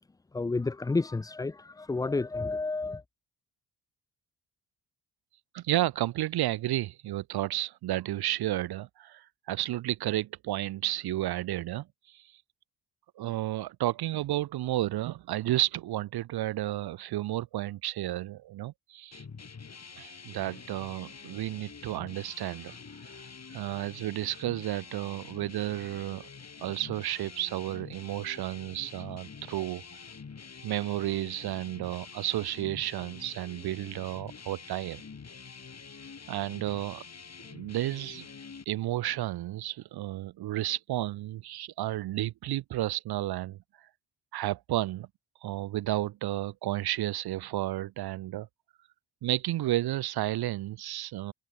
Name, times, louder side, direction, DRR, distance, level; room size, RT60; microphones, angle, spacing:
voice 1, 0.3-3.0, left 3 dB, 10° left, 0.3 m, -30 dB
voice 2, 5.5-12.3 13.2-19.2 20.0-22.8 23.0-23.1 23.5-26.3 26.6-29.8 30.6-35.0 36.3-37.0 37.5-38.3 38.7-43.9 44.3-45.1 45.4-48.5 49.2-51.3, right 14 dB, 65° right, 0.6 m, -32 dB
sound 1, 19.1-38.7, left 5 dB, 40° left, 2.9 m, -47 dB
supercardioid pair, 55°, 42 cm